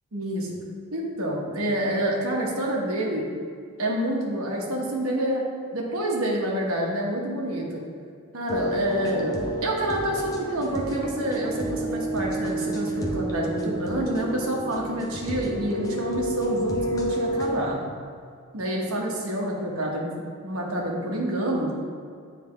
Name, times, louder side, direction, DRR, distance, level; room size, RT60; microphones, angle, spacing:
voice 1, 0.1-0.5 0.9-3.2 3.8-5.4 5.7-7.8 8.3-17.8 18.5-20.1 20.4-21.7, right 1 dB, 75° right, -2 dB, 1.2 m, -28 dB
dreamy electronic music clean loop, 8.5-17.5, right 1 dB, 15° left, 0.6 m, -30 dB
9.2 x 3.5 x 3.2 m, 2.3 s
head